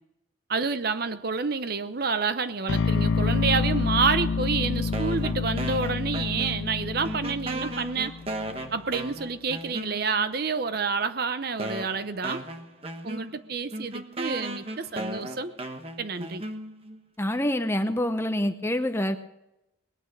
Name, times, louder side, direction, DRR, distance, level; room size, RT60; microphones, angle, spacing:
voice 1, 0.5-8.1 8.7-12.4 13.0-15.5 16.0-16.4, right 5 dB, 50° right, 12 dB, 0.7 m, -28 dB
sound 1, 2.7-8.7, left 4 dB, 65° left, 0.4 m, -28 dB
sound 2, 4.9-6.8 7.0-10.3 11.0-11.1 11.6-17.0, right 1 dB, 30° right, 1.1 m, -36 dB
voice 2, 17.2-19.2, left 1 dB, 10° left, 9 dB, 0.7 m, -26 dB
20.0 x 9.3 x 6.6 m, 0.88 s
head